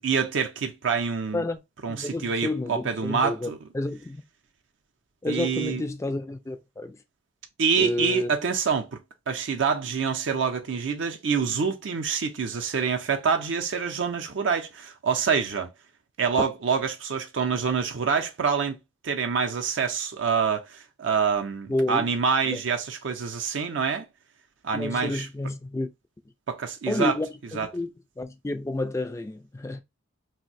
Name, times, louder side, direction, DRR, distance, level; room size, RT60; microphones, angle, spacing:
voice 1, 0.0-1.4 1.8-3.6 5.3-5.8 7.6-9.0 9.3-15.7 16.2-18.8 19.0-24.1 24.6-25.3 26.5-27.1 27.5-27.7, right 6 dB, 65° right, 0.5 m, -26 dB
voice 2, 1.9-3.5 3.7-4.2 5.2-7.0 7.8-8.3 21.7-22.0 22.4-22.6 24.7-25.9 26.9-27.9 28.2-29.8, left 2 dB, 15° left, 0.3 m, -30 dB
2.6 x 2.1 x 3.9 m
head